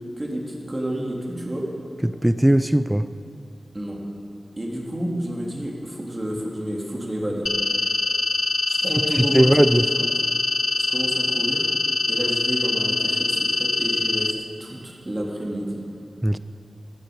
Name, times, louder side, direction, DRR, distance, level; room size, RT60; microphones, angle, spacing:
voice 1, 0.2-1.7 3.7-4.0 4.6-7.5 8.7-10.1 10.8-11.7 12.1-15.8, right 1 dB, 30° right, -2 dB, 3.2 m, -30 dB
voice 2, 2.0-3.1 9.2-9.9 16.2-16.4, right 1 dB, 10° right, 13 dB, 0.5 m, -18 dB
sound 1, 7.5-14.3, left 3 dB, 70° left, 0.9 m, -23 dB
15.0 x 11.5 x 7.9 m, 2.5 s
wide cardioid pair, 70°, 0 cm